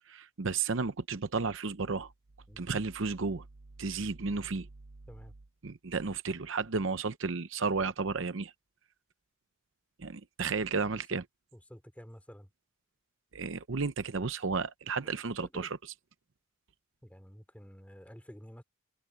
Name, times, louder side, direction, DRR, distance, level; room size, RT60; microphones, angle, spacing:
voice 1, 0.1-2.1 2.6-3.4 3.8-4.7 5.6-8.5 10.0-11.2 13.3-15.7, right 4 dB, 65° right, 0.7 m, -33 dB
voice 2, 11.5-12.5 15.4-15.7 17.0-18.6, equal, 5° left, 3.3 m, -50 dB
open air
head